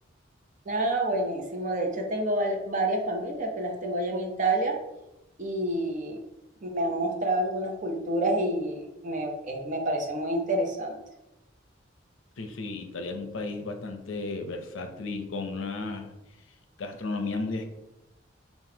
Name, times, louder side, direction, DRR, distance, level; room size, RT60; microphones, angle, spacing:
voice 1, 0.7-4.8 5.4-6.2 6.6-11.0, right 1 dB, 40° right, 2 dB, 0.6 m, -28 dB
voice 2, 12.4-16.1 16.8-17.6, left 3 dB, 80° left, 6 dB, 0.6 m, -34 dB
5.8 x 2.3 x 2.8 m, 0.92 s
head